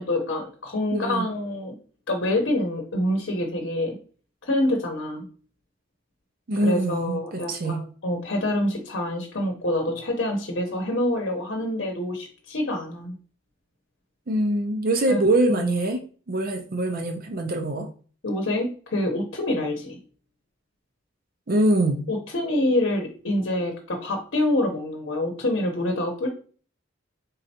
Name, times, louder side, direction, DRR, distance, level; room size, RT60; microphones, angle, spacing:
voice 1, 0.0-1.7 2.1-4.0 4.4-5.3 6.6-13.2 15.1-15.2 15.6-15.7 18.2-20.0 22.1-26.3, left 1 dB, 65° left, 3 dB, 0.8 m, -26 dB
voice 2, 0.9-1.3 6.5-7.8 14.3-16.0 16.3-17.9 21.5-22.1, right 1 dB, 50° right, 5 dB, 0.5 m, -24 dB
4.3 x 3.8 x 2.8 m, 0.40 s
head